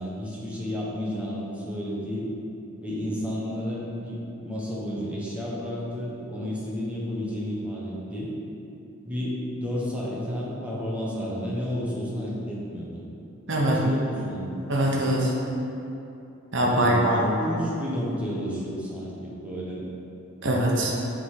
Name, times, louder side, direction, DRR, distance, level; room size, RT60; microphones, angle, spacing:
voice 1, 0.0-2.3 2.8-8.3 9.0-13.0 13.6-14.6 16.7-19.9, equal, 5° right, -6 dB, 1.0 m, -31 dB
voice 2, 13.5-13.8 14.7-15.3 16.5-17.2 20.4-20.9, right 1 dB, 55° right, -3 dB, 1.0 m, -22 dB
7.0 x 3.8 x 4.7 m, 2.8 s
head